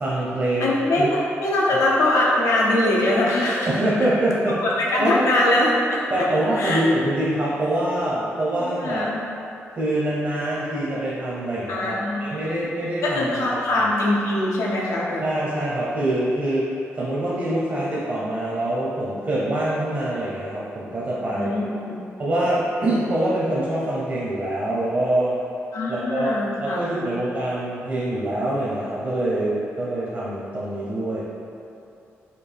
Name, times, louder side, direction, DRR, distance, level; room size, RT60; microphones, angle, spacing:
voice 1, 0.0-1.1 3.7-4.6 5.0-5.2 6.1-9.1 9.8-13.4 13.8-13.9 15.2-16.7 17.0-21.6 22.2-25.4 25.9-31.3, right 1 dB, 50° right, -7 dB, 0.8 m, -24 dB
voice 2, 0.6-3.8 4.6-6.0 6.5-6.8 8.6-9.2 11.7-12.6 13.0-15.2 21.3-21.9 25.7-27.1, left 1 dB, 85° left, -4 dB, 0.7 m, -22 dB
4.2 x 2.4 x 3.5 m, 2.7 s
cardioid pair, 80°, 5 cm